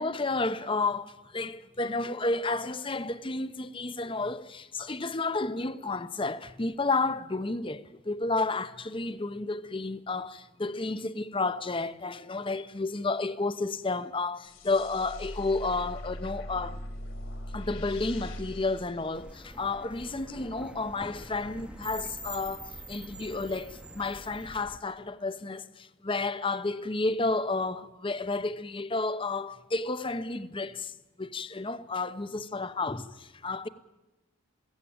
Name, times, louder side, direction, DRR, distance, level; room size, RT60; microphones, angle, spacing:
voice 1, 0.0-16.8 17.5-33.7, left 3 dB, 25° left, 0.8 m, -31 dB
sound 1, 14.4-19.8, equal, 70° left, 3.3 m, -41 dB
sound 2, 19.1-24.8, right 1 dB, 5° right, 0.9 m, -44 dB
22.0 x 17.0 x 8.8 m
head